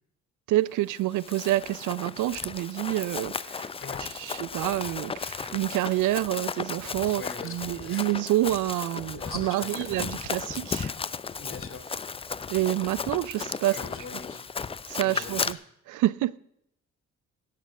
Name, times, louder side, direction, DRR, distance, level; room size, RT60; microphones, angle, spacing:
voice 1, 0.5-3.7 4.2-10.9 12.5-13.8 14.9-15.6 15.9-16.4, right 16 dB, 80° right, 0.5 m, -28 dB
Run, 1.0-15.5, left 5 dB, 20° left, 0.4 m, -35 dB
voice 2, 7.1-8.1 9.1-9.9 11.4-11.9 13.7-14.5 15.0-15.6, left 5 dB, 45° left, 2.6 m, -42 dB
17.0 x 6.7 x 6.3 m
cardioid pair, 90°, 30 cm